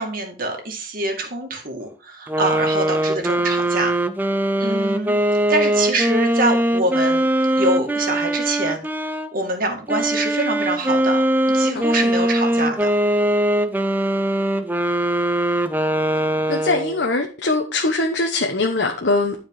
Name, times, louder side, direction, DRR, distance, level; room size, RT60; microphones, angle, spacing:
voice 1, 0.0-3.9 4.6-5.2 5.5-7.3 7.6-8.8 9.3-11.2 11.5-12.9, right 2 dB, 50° right, 2.2 m, -25 dB
sound 1, 2.3-9.3 9.9-17.0, right 1 dB, 10° right, 0.6 m, -21 dB
voice 2, 11.7-12.1 16.5-19.3, left 2 dB, 65° left, 1.2 m, -22 dB
12.0 x 4.8 x 4.8 m
head